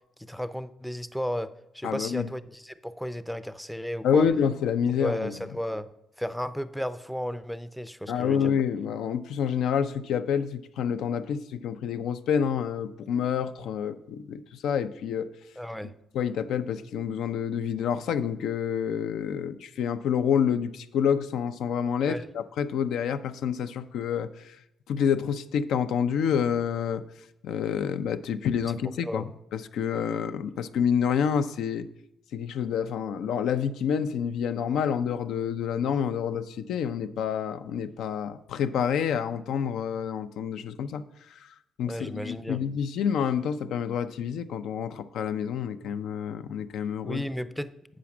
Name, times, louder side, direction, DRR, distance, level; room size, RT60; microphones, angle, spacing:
voice 1, 0.2-4.3 5.0-5.9 6.2-8.5 15.6-15.9 22.1-22.2 29.0-29.3 41.8-42.6 47.1-47.7, equal, ahead, 12 dB, 0.4 m, -33 dB
voice 2, 1.8-2.2 4.0-5.4 8.1-15.3 16.1-24.6 24.9-27.0 27.4-31.9 32.3-41.0 41.3-41.5 41.8-47.2, left 7 dB, 80° left, 11 dB, 0.4 m, -28 dB
8.4 x 5.1 x 5.9 m, 0.83 s
cardioid pair, 90°, 0 cm